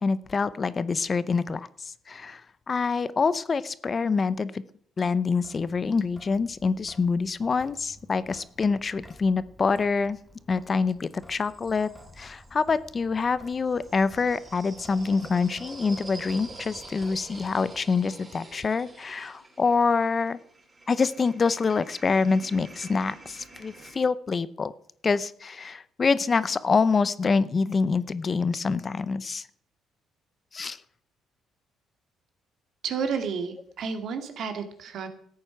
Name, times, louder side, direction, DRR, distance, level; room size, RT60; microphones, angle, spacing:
voice 1, 0.0-1.7 2.1-2.4 2.7-4.6 5.0-10.2 10.5-11.9 12.2-20.4 20.9-24.7 25.0-29.4 30.5-30.8, left 4 dB, 30° left, 17 dB, 0.7 m, -26 dB
Sink (filling or washing) / Drip, 5.4-17.9, left 1 dB, 10° left, 2.0 m, -53 dB
sound 1, 10.3-12.7 13.5-24.0, right 2 dB, 25° right, 4.6 m, -47 dB
voice 2, 32.8-35.1, right 6 dB, 65° right, 7 dB, 2.1 m, -31 dB
14.5 x 8.7 x 5.9 m, 0.62 s
cardioid pair, 110°, 0 cm